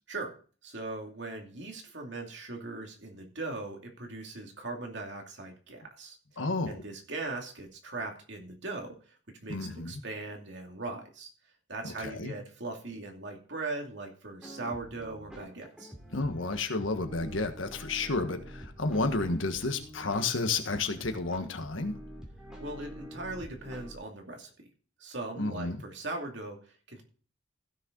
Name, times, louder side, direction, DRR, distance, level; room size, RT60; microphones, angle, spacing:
voice 1, 0.6-6.2 6.7-11.3 11.7-15.9 22.6-24.5 25.0-27.0, right 2 dB, 65° right, 2 dB, 2.6 m, -39 dB
voice 2, 6.4-6.8 9.5-10.0 11.8-12.3 16.1-21.9 25.4-25.8, left 3 dB, 90° left, 7 dB, 1.5 m, -31 dB
sound 1, 14.4-24.0, equal, 5° right, 2.5 m, -47 dB
15.5 x 6.7 x 3.9 m, 0.40 s
head